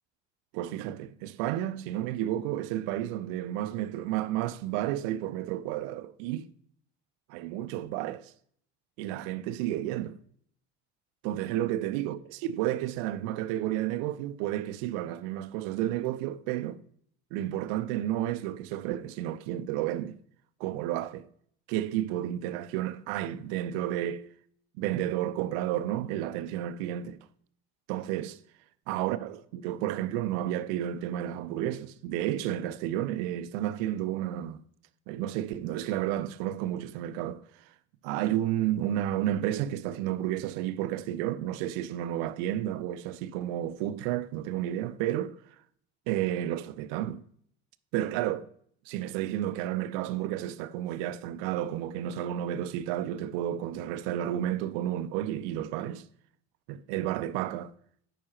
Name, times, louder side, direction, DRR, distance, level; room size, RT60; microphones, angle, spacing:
voice 1, 0.5-6.5 7.3-8.3 9.0-10.2 11.2-16.8 17.3-20.2 20.6-21.3 21.7-24.3 24.8-27.2 27.9-28.4 28.9-34.6 35.1-37.4 38.0-45.4 46.1-47.2 47.9-48.5 48.9-56.0 56.7-57.7, right 12 dB, 70° right, 0.5 m, -31 dB
8.9 x 5.4 x 2.9 m
hypercardioid pair, 60°, 36 cm